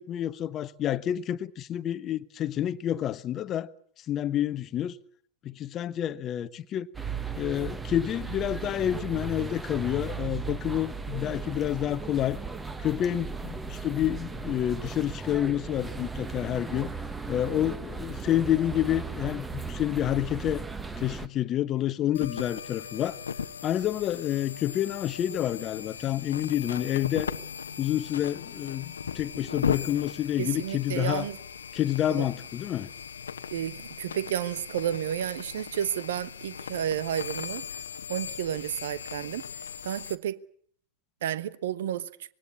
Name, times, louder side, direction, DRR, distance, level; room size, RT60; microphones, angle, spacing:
voice 1, 0.0-3.7 4.0-5.0 5.4-6.9 7.4-12.4 12.8-16.9 17.3-20.6 21.0-23.2 23.6-27.3 27.8-31.3 31.7-32.9, left 11 dB, 30° left, 1.1 m, -29 dB
sound 1, 6.9-21.3, right 4 dB, 10° right, 1.5 m, -36 dB
sound 2, 22.1-40.2, left 7 dB, 70° left, 1.1 m, -38 dB
voice 2, 30.4-31.4 32.1-32.3 33.5-37.6 38.1-39.4 39.8-40.4 41.2-42.1, right 10 dB, 60° right, 1.2 m, -31 dB
25.5 x 21.5 x 8.5 m
figure-of-eight pair, 90°, 0 cm